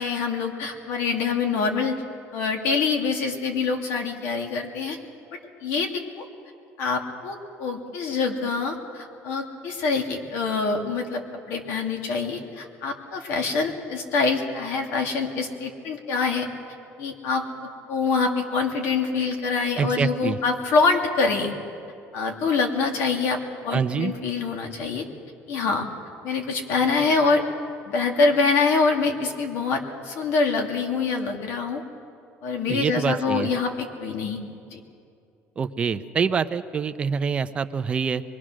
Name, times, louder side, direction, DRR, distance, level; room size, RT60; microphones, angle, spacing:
voice 1, 0.0-2.0 2.3-5.0 5.6-6.2 6.8-11.2 11.5-16.5 17.0-21.6 22.1-23.4 23.6-25.1 25.5-25.9 26.2-27.4 27.9-31.8 32.4-34.4 34.7-34.8, left 4 dB, 65° left, 3 dB, 2.6 m, -25 dB
voice 2, 19.8-20.4 23.7-24.1 32.7-33.5 35.6-38.2, right 6 dB, 25° right, 10 dB, 0.6 m, -25 dB
25.0 x 22.0 x 6.3 m, 2.4 s
cardioid pair, 165°, 5 cm